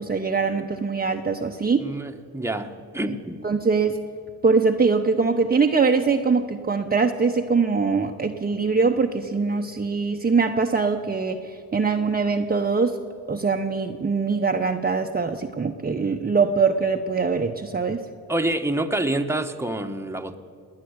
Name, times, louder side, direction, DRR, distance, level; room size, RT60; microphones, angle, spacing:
voice 1, 0.0-1.8 3.4-4.0 4.4-13.0 13.3-18.0, right 4 dB, 25° right, 3 dB, 0.8 m, -22 dB
voice 2, 1.8-3.4 18.3-20.4, right 1 dB, 5° right, 6 dB, 1.2 m, -27 dB
18.5 x 9.6 x 8.1 m, 2.3 s
cardioid pair, 70°, 37 cm